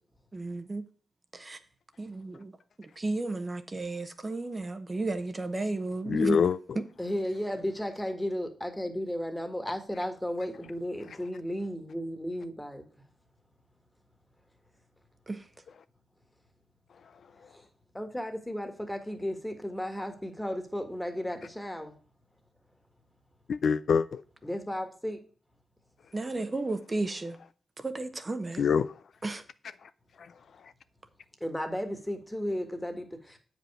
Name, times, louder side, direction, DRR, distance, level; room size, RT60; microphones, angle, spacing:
voice 1, 0.3-0.8 1.3-1.6 2.0-2.5 2.8-6.4 15.3-15.4 26.1-27.4 27.8-28.6 29.2-29.4, right 2 dB, 30° right, 0.8 m, -33 dB
voice 2, 6.1-6.8 23.5-24.2 28.6-28.9 29.8-29.9 30.2-30.3, left 6 dB, 70° left, 0.3 m, -26 dB
voice 3, 7.0-12.8 17.9-21.9 24.4-25.2 31.4-33.4, equal, 10° left, 1.6 m, -34 dB
7.7 x 5.1 x 4.9 m
cardioid pair, 70°, 0 cm